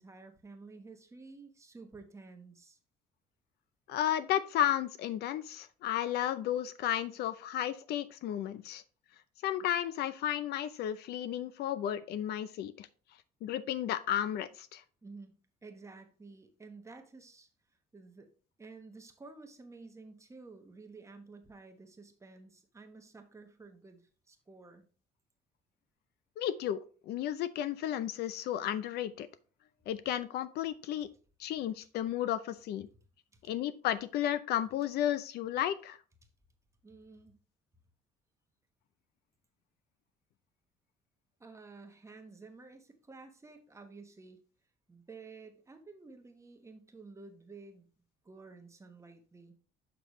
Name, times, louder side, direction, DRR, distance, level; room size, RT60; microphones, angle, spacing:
voice 1, 0.0-2.8 15.0-15.3 15.6-17.5 17.9-18.3 18.6-24.8 33.3-33.4 36.8-37.4 41.4-44.4 44.9-47.9 48.2-49.5, right 3 dB, 15° right, 5 dB, 1.1 m, -52 dB
voice 2, 3.9-8.8 9.4-12.9 13.4-14.8 26.4-29.3 29.9-31.1 31.4-32.9 33.5-36.0, left 11 dB, 75° left, 15 dB, 0.5 m, -33 dB
6.7 x 6.0 x 3.1 m, 0.39 s
cardioid pair, 110°, 17 cm